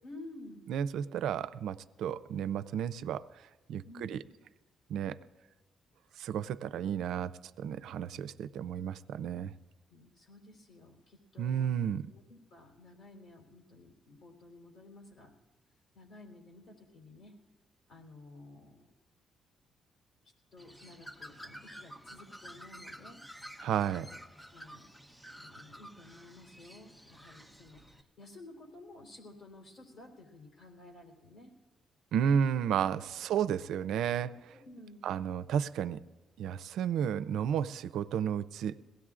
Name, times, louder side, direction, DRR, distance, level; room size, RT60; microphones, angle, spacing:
voice 1, 0.0-0.6 3.8-4.1 9.9-15.3 15.9-17.3 17.9-18.9 20.5-23.2 23.9-24.1 24.5-24.8 25.2-31.5 34.5-35.1, left 2 dB, 55° left, 0 dB, 3.5 m, -53 dB
voice 2, 0.7-4.2 4.9-5.2 6.1-9.5 11.4-12.0 23.6-24.1 32.1-34.6 35.0-36.0 36.4-38.8, right 8 dB, 80° right, 13 dB, 0.4 m, -32 dB
Bird, 20.6-28.0, equal, 5° left, 0.8 m, -50 dB
22.0 x 17.0 x 2.5 m, 1.2 s
cardioid pair, 90°, 0 cm